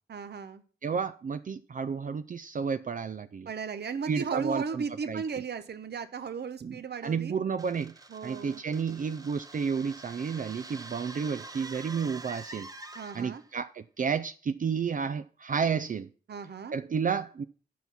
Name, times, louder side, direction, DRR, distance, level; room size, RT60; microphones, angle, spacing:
voice 1, 0.1-0.6 3.5-7.4 8.1-8.6 12.9-13.4 16.3-16.8, right 6 dB, 80° right, 0.8 m, -36 dB
voice 2, 0.8-3.5 4.1-5.2 6.6-7.9 8.2-12.7 13.1-16.1 16.7-17.4, right 6 dB, 50° right, 0.4 m, -31 dB
sound 1, 7.6-13.5, right 2 dB, 20° right, 0.7 m, -46 dB
10.5 x 5.6 x 5.9 m
wide cardioid pair, 80°, 17 cm